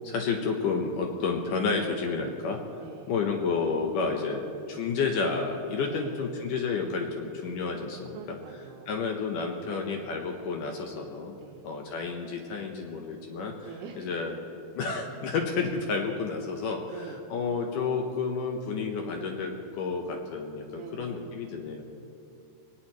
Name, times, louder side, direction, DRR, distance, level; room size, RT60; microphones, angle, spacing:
voice 1, 0.0-2.6 3.1-8.4 8.9-11.3 11.6-14.3 14.8-21.8, left 4 dB, 70° left, 2 dB, 2.1 m, -30 dB
voice 2, 2.8-3.1 5.8-6.2 8.1-9.0 9.6-10.1 11.3-11.7 13.6-14.0 16.9-17.3 20.7-21.2, right 7 dB, 75° right, -2 dB, 2.9 m, -45 dB
21.5 x 18.5 x 3.1 m, 2.5 s
omnidirectional pair, 4.7 m